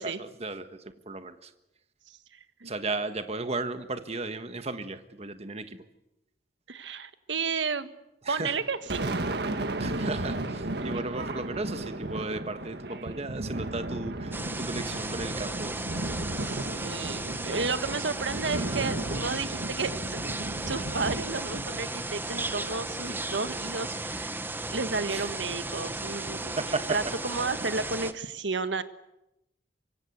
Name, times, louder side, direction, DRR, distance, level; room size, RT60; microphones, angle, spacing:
voice 1, 0.0-1.5 2.6-5.8 8.2-8.6 9.8-15.8 23.0-23.2 25.1-25.3 26.1-26.2 26.6-27.0, right 3 dB, 35° right, 9 dB, 1.5 m, -35 dB
voice 2, 2.1-2.7 6.7-7.9 8.3-9.2 16.4-20.2 20.7-26.6 26.9-28.8, right 4 dB, 85° right, 11 dB, 1.5 m, -32 dB
Thunder, 8.5-23.1, right 2 dB, 60° right, 1.7 m, -35 dB
Tick-tock, 12.9-13.0 13.9-14.2 14.9-15.2 15.9-16.0 16.3-16.4 16.9-17.0 17.9-18.0 18.9-19.0 19.9-20.0 20.9-21.0 21.9-22.0, left 4 dB, 70° left, 2.1 m, -49 dB
sound 1, 14.3-28.1, right 2 dB, 10° right, 1.2 m, -35 dB
24.5 x 24.0 x 8.1 m, 0.89 s
head